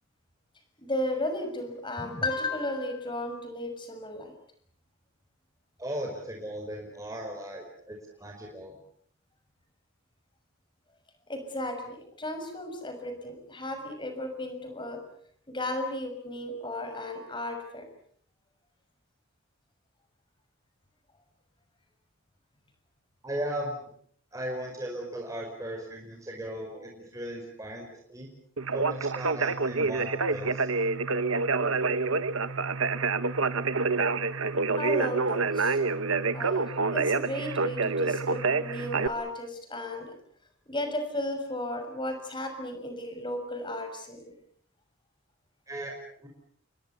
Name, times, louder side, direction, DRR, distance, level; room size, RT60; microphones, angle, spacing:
voice 1, 0.8-4.3 11.3-15.0 15.5-17.8 34.8-35.8 36.3-40.1 40.7-44.3, left 1 dB, 25° left, 7 dB, 6.5 m, -34 dB
voice 2, 5.8-8.8 23.2-23.9 24.3-28.3 28.7-30.7 45.7-46.3, right 1 dB, 15° right, 0 dB, 5.1 m, -37 dB
Conversation, 28.6-39.1, right 4 dB, 85° right, 1.3 m, -27 dB
30.0 x 23.5 x 7.0 m, 0.63 s
head